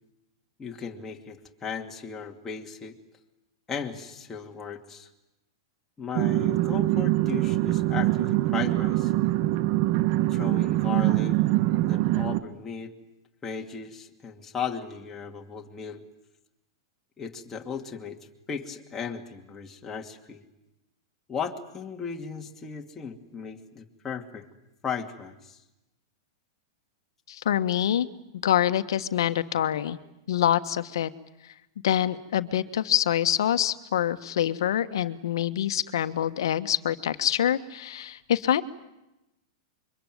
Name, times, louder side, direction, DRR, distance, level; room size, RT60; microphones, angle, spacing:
voice 1, 0.6-3.0 3.7-5.1 6.0-9.1 10.3-11.4 11.8-12.9 13.4-16.1 17.2-18.2 18.5-20.4 21.3-24.5 24.8-25.6, left 6 dB, 15° left, 1 dB, 2.5 m, -36 dB
sound 1, 6.1-12.4, right 17 dB, 45° right, 1.2 m, -24 dB
voice 2, 27.3-28.1 28.4-30.0 30.3-31.1 31.8-38.6, left 11 dB, 75° left, 11 dB, 1.4 m, -25 dB
26.0 x 23.5 x 9.3 m, 0.93 s
hypercardioid pair, 130°, 2 cm